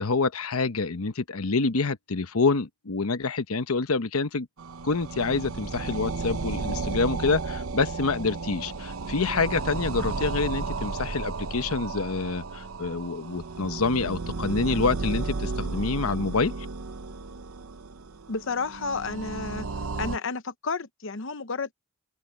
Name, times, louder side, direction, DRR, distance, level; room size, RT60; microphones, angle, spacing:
voice 1, 0.0-4.5 4.8-16.5, left 4 dB, 90° left, 1.0 m, -27 dB
sound 1, 4.6-20.2, right 3 dB, 80° right, 0.8 m, -33 dB
voice 2, 18.3-19.7 20.0-21.7, left 4 dB, 65° left, 1.0 m, -31 dB
head